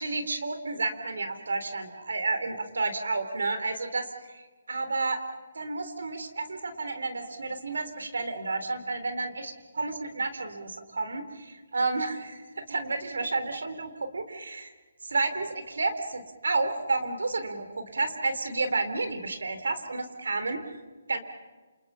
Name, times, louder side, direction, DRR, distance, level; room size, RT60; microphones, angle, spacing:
voice 1, 0.0-5.2 5.6-11.4 11.7-14.7 15.0-17.7 17.9-20.6 21.1-21.2, right 3 dB, 75° right, 8 dB, 3.6 m, -31 dB
28.5 x 28.0 x 5.7 m, 1.3 s
figure-of-eight pair, 145°, 0 cm